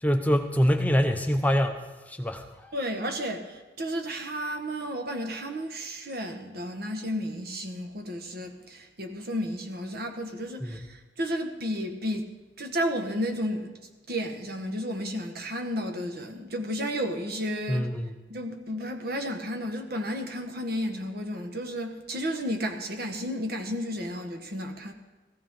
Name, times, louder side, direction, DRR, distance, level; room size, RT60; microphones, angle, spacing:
voice 1, 0.0-2.7 10.6-10.8 17.7-18.1, equal, 10° left, 0.7 m, -25 dB
voice 2, 2.7-13.8 14.1-17.9 18.3-24.9, equal, 60° right, 1.6 m, -32 dB
17.0 x 15.0 x 3.8 m
head